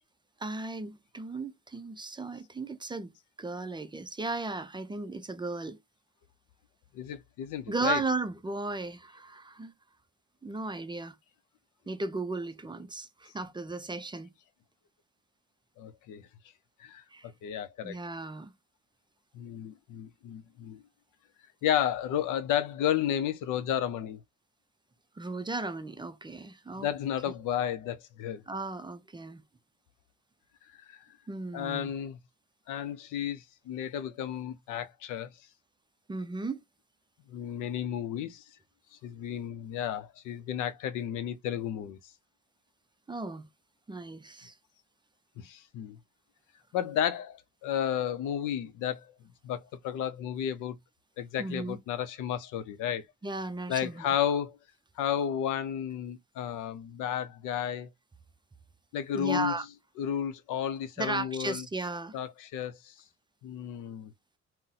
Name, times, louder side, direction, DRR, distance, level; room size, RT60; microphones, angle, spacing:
voice 1, 0.4-3.1 3.4-5.8 7.7-9.7 10.4-11.2 11.9-14.3 17.1-17.3 17.8-18.5 25.2-26.9 28.5-29.4 31.3-31.9 36.1-36.6 43.1-43.5 43.9-44.5 51.4-51.8 53.2-54.1 59.1-59.6 61.0-62.2, right 3 dB, 15° right, 0.4 m, -35 dB
voice 2, 6.9-8.1 15.8-16.3 16.8-17.0 17.4-18.0 19.3-20.8 21.6-24.2 26.7-28.4 30.9-31.1 31.5-32.2 32.7-35.3 37.3-38.4 39.0-42.0 45.4-46.0 46.7-49.1 49.4-50.8 51.2-53.0 53.7-54.6 55.0-57.9 58.9-59.7 60.0-61.7 62.1-62.9 63.4-64.1, left 10 dB, 90° left, 0.6 m, -32 dB
2.6 x 2.1 x 3.8 m
cardioid pair, 90°, 30 cm